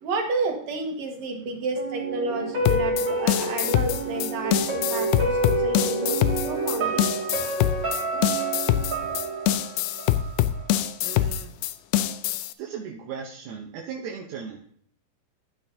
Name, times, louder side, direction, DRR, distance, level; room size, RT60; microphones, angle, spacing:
voice 1, 0.0-7.0, right 3 dB, 55° right, 2 dB, 2.5 m, -30 dB
sound 1, 1.8-10.7 11.1-11.2, right 2 dB, 35° right, 2.3 m, -29 dB
sound 2, 2.7-12.5, left 12 dB, 80° left, 2.4 m, -24 dB
voice 2, 11.0-11.5 12.6-14.6, right 6 dB, 70° right, 0 dB, 1.9 m, -37 dB
13.0 x 9.3 x 2.8 m, 0.62 s
omnidirectional pair, 4.4 m